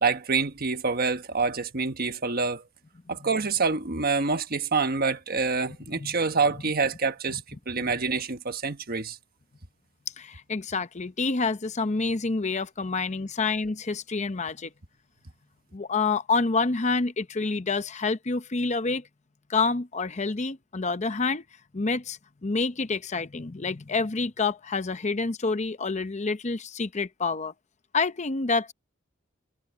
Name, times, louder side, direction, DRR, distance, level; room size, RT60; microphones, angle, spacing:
voice 1, 0.0-2.6 3.1-9.2, right 4 dB, 50° right, 1.3 m, -27 dB
voice 2, 5.7-6.1 7.3-7.4 10.2-14.7 15.7-19.1 19.5-21.4 21.7-27.5 27.9-28.7, left 4 dB, 35° left, 0.7 m, -28 dB
head